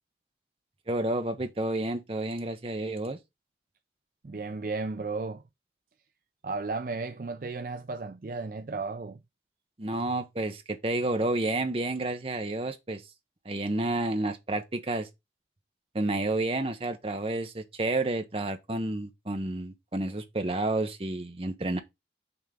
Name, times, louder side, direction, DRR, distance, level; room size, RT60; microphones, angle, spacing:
voice 1, 0.9-3.2 9.8-13.0 13.4-15.1 15.9-21.8, right 2 dB, 30° right, 0.8 m, -30 dB
voice 2, 4.2-5.4 6.4-9.2, right 3 dB, 50° right, 0.4 m, -34 dB
6.0 x 3.6 x 5.1 m
head